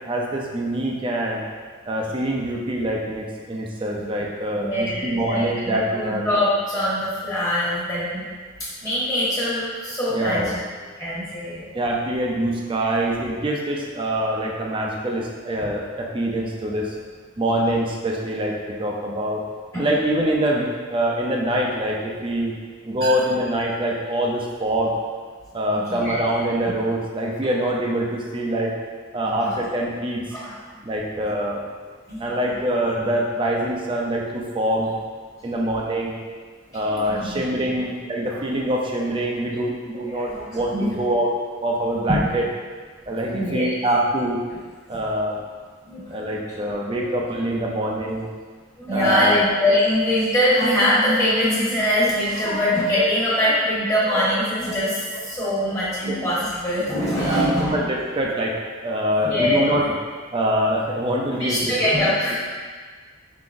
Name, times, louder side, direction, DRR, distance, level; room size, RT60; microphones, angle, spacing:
voice 1, 0.0-1.4 1.9-6.2 10.1-10.6 11.7-16.9 17.4-19.4 19.8-22.5 22.8-24.9 25.5-28.7 29.1-30.2 30.8-31.6 32.2-34.9 35.4-36.2 36.7-41.3 41.6-42.4 43.1-44.4 44.9-45.4 46.1-48.3 48.9-49.3 56.1-56.2 57.2-58.6 58.8-59.8 60.3-61.7, right 1 dB, 25° right, -1 dB, 0.5 m, -24 dB
voice 2, 4.5-8.2 8.8-10.6 11.0-11.7 19.7-19.9 23.0-23.1 25.7-26.2 29.2-29.6 30.3-30.5 32.1-32.5 36.7-37.3 37.7-37.8 38.3-38.4 40.1-41.0 42.1-42.2 43.3-43.8 44.9-45.0 45.8-46.2 46.9-47.0 48.8-57.8 59.2-59.8 61.4-62.4, left 1 dB, 20° left, -9 dB, 1.3 m, -23 dB
4.7 x 3.9 x 2.5 m, 1.5 s
head